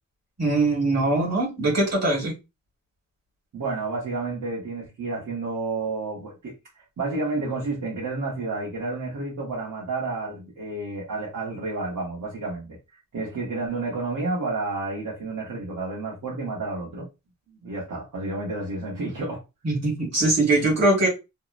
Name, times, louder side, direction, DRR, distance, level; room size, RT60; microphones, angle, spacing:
voice 1, 0.4-2.3 19.6-21.1, right 2 dB, 50° right, 1.5 m, -22 dB
voice 2, 3.5-17.1 17.5-19.4, right 3 dB, 65° right, 0.9 m, -30 dB
2.7 x 2.0 x 2.4 m
wide cardioid pair, 170°, 32 cm